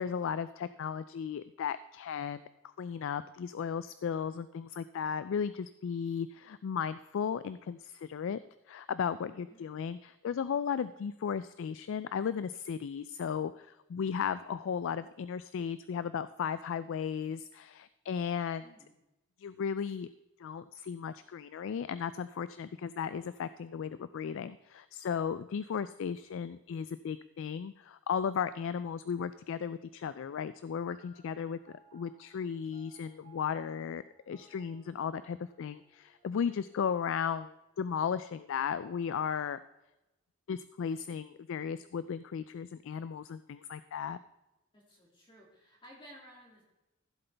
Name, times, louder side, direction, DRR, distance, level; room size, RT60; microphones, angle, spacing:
voice 1, 0.0-2.4 2.8-8.4 8.7-18.7 19.4-20.1 20.4-31.6 31.9-39.6 40.5-44.2, left 7 dB, 65° left, 14 dB, 0.3 m, -35 dB
voice 2, 9.1-9.8 18.6-18.9 44.7-46.6, equal, 25° left, -3 dB, 2.4 m, -56 dB
sound 1, 30.1-38.9, right 3 dB, 45° right, 1.7 m, -64 dB
15.0 x 7.8 x 3.4 m, 0.98 s
head